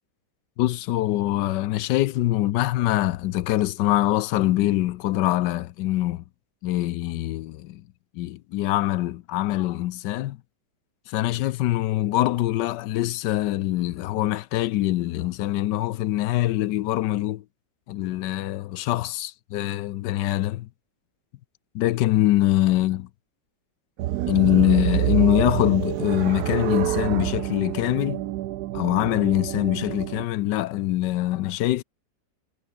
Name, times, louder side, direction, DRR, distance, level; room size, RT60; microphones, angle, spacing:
voice 1, 0.6-6.2 6.6-7.8 8.1-10.4 11.1-17.4 17.9-20.7 21.7-23.1 24.3-28.2 28.7-31.8, left 15 dB, 75° left, 1.2 m, -24 dB
sound 1, 24.0-30.2, right 14 dB, 70° right, 1.1 m, -27 dB
omnidirectional pair, 1.9 m